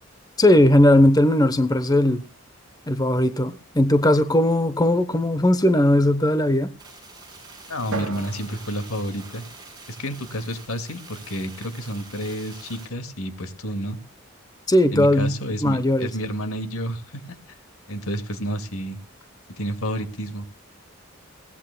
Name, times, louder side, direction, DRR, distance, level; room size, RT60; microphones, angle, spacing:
voice 1, 0.4-2.2 2.9-6.7 14.7-15.3 15.6-16.1, left 1 dB, 15° left, 0.9 m, -18 dB
sound 1, 6.8-12.9, right 3 dB, 20° right, 6.9 m, -45 dB
voice 2, 7.7-9.4 9.9-14.0 14.9-17.4 17.9-19.0 19.6-20.5, equal, 90° left, 2.2 m, -30 dB
Drum, 7.9-10.2, right 3 dB, 80° right, 2.0 m, -37 dB
21.5 x 17.0 x 2.3 m
head